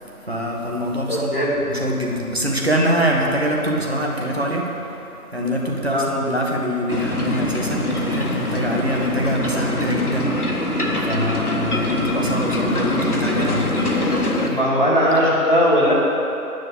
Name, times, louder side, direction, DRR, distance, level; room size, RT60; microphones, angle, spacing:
voice 1, 0.0-14.6, equal, 45° right, -1 dB, 1.6 m, -24 dB
voice 2, 1.1-1.5 5.9-6.1 14.5-16.0, equal, 30° left, -8 dB, 2.4 m, -18 dB
sound 1, 6.9-14.5, left 1 dB, 75° left, 1.7 m, -23 dB
10.0 x 7.3 x 8.8 m, 2.9 s
figure-of-eight pair, 180°, 45 cm